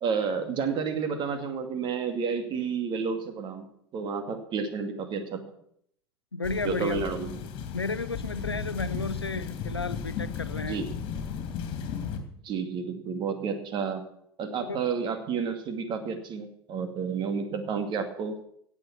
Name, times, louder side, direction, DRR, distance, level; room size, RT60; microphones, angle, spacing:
voice 1, 0.0-3.7 3.9-5.5 6.6-7.4 10.6-10.9 12.4-14.0 14.4-18.4, right 6 dB, 35° right, 7 dB, 2.5 m, -30 dB
voice 2, 6.3-7.1 7.7-10.8 14.7-14.8, left 3 dB, 85° left, 14 dB, 0.8 m, -33 dB
sound 1, 6.4-12.2, left 7 dB, 40° left, 2.5 m, -35 dB
17.0 x 7.3 x 7.3 m, 0.70 s
figure-of-eight pair, 80°, 13 cm